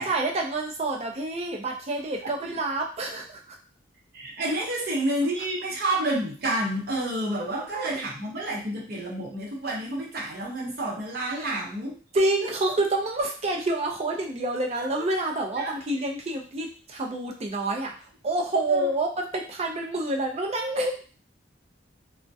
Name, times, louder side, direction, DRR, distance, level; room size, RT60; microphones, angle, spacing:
voice 1, 0.0-3.6 11.4-11.5 12.1-21.0, right 2 dB, 35° right, 1 dB, 0.4 m, -28 dB
voice 2, 4.1-11.9 14.7-15.1 15.5-15.7 18.7-18.9, right 1 dB, 55° right, -3 dB, 0.8 m, -29 dB
2.2 x 2.1 x 2.6 m, 0.39 s
head